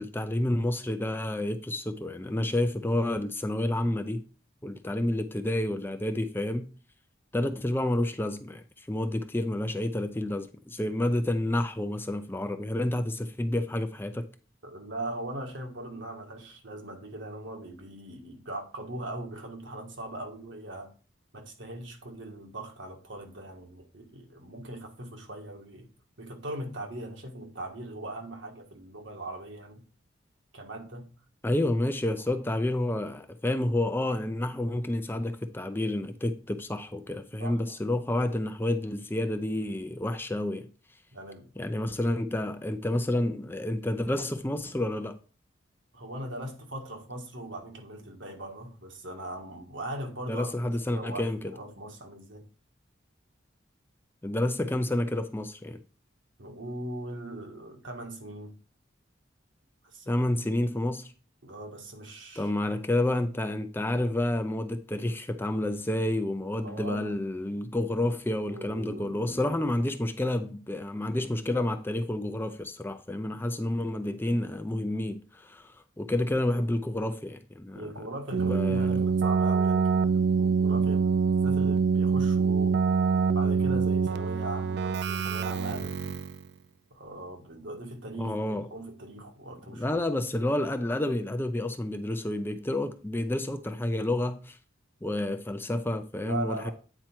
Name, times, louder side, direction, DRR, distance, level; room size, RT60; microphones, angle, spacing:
voice 1, 0.0-4.2 4.6-6.7 7.3-14.2 31.4-40.7 41.6-45.2 50.3-51.5 54.2-55.8 60.1-61.1 62.4-77.9 78.5-79.0 88.2-88.7 89.7-94.6 95.0-96.7, left 1 dB, 10° left, 0.4 m, -29 dB
voice 2, 14.6-20.9 21.3-25.9 26.2-29.8 30.5-31.1 37.4-37.8 41.1-41.5 45.9-52.4 56.4-58.5 59.8-60.2 61.4-62.5 66.6-67.2 68.5-69.7 77.7-82.8 83.3-86.1 86.9-90.0 96.1-96.7, right 1 dB, 75° right, 1.6 m, -40 dB
Keyboard (musical), 78.3-86.4, right 5 dB, 55° right, 0.4 m, -25 dB
9.0 x 4.6 x 4.4 m
head